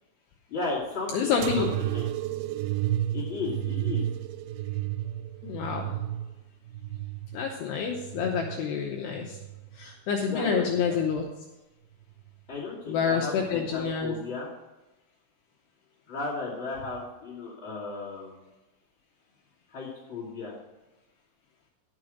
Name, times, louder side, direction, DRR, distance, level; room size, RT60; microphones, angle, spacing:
voice 1, 0.5-2.0 3.1-4.1 10.3-11.0 12.5-14.5 16.1-18.4 19.7-20.5, left 3 dB, 40° left, -9 dB, 2.0 m, -35 dB
voice 2, 1.1-1.7 5.4-5.9 7.3-9.4 9.7-11.2 12.9-14.2, left 6 dB, 75° left, 1 dB, 2.5 m, -28 dB
sound 1, 1.4-8.6 9.2-9.9 10.7-11.2 12.2-12.3, right 13 dB, 90° right, 2.6 m, -32 dB
12.0 x 6.4 x 6.1 m, 1.0 s
omnidirectional pair, 5.8 m